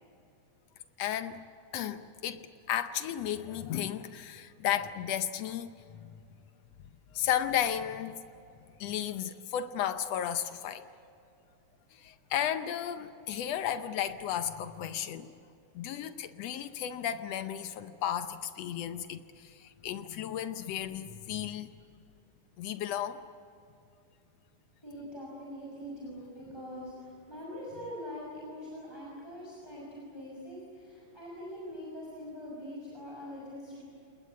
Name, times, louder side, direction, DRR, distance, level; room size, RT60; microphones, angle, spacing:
voice 1, 1.0-1.4 1.7-6.2 7.1-8.2 8.8-10.9 11.9-15.3 15.7-21.7 22.6-23.2, left 10 dB, 80° left, 10 dB, 1.4 m, -34 dB
voice 2, 24.8-33.8, equal, 5° left, -5 dB, 6.0 m, -43 dB
28.0 x 21.0 x 8.5 m, 2.6 s
omnidirectional pair, 3.9 m